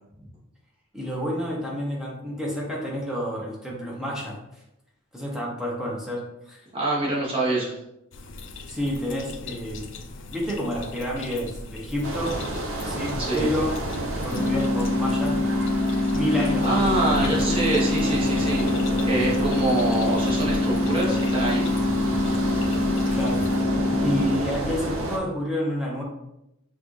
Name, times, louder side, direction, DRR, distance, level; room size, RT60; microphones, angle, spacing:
voice 1, 0.9-4.4 5.1-6.6 8.7-9.9 10.3-12.4 12.8-13.9 14.2-15.4 16.1-17.5 23.1-23.5 24.0-26.0, equal, ahead, -4 dB, 0.8 m, -29 dB
voice 2, 6.7-7.7 13.2-13.5 16.3-18.6 19.0-21.7, right 2 dB, 25° right, -6 dB, 1.0 m, -25 dB
sound 1, 8.1-23.6, left 1 dB, 60° left, 0.4 m, -38 dB
sound 2, 12.0-25.2, right 1 dB, 80° right, 0.7 m, -31 dB
sound 3, 14.3-24.3, left 2 dB, 20° left, 0.9 m, -24 dB
5.8 x 2.4 x 3.1 m, 0.86 s
head